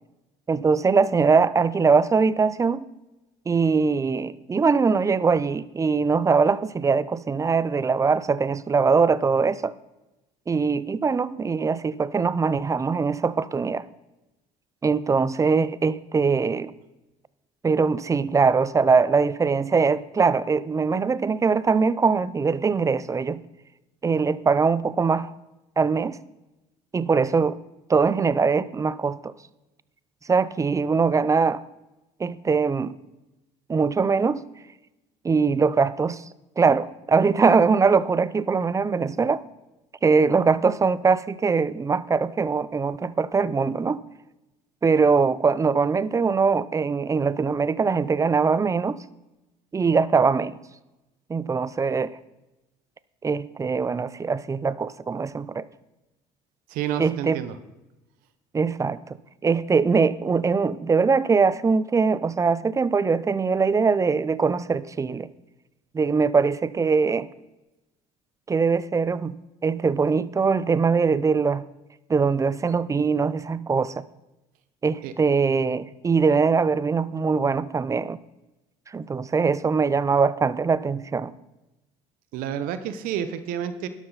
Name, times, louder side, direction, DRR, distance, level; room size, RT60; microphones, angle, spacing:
voice 1, 0.5-2.9 3.5-9.7 10.5-13.8 14.8-16.7 17.6-23.4 24.0-25.3 25.8-26.2 26.9-27.6 27.9-29.3 30.3-31.6 32.2-32.9 33.7-34.4 35.2-36.2 36.6-39.4 40.0-44.0 44.8-49.0 49.7-50.6 51.3-52.2 53.2-55.7 57.0-57.4 58.5-59.0 59.4-65.3 65.9-67.3 68.5-69.4 69.6-71.6 72.1-74.0 74.8-78.2 78.9-81.3, right 5 dB, 20° right, 18 dB, 0.6 m, -22 dB
voice 2, 56.7-57.5 75.0-75.1 82.3-83.9, right 9 dB, 70° right, 11 dB, 1.1 m, -29 dB
12.0 x 12.0 x 4.1 m, 0.99 s
supercardioid pair, 90°, 15 cm